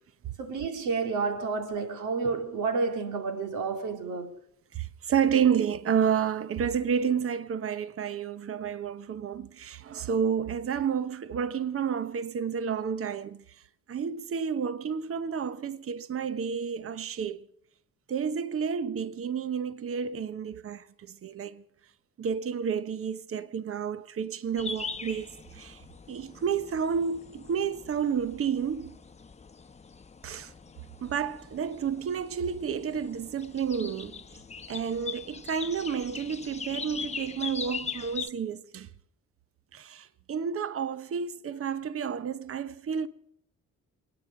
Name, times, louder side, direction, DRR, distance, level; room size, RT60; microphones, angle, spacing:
voice 1, 0.4-4.4, right 4 dB, 80° right, 2.7 m, -30 dB
voice 2, 4.7-13.4 13.9-17.4 18.1-20.8 21.2-21.6 22.2-25.3 25.5-25.8 26.1-29.0 30.2-30.5 31.0-34.2 34.7-38.9 39.7-43.1, right 7 dB, 45° right, 1.0 m, -30 dB
sound 1, 24.6-38.3, left 5 dB, 20° left, 0.9 m, -41 dB
28.5 x 9.8 x 5.2 m
cardioid pair, 90°, 30 cm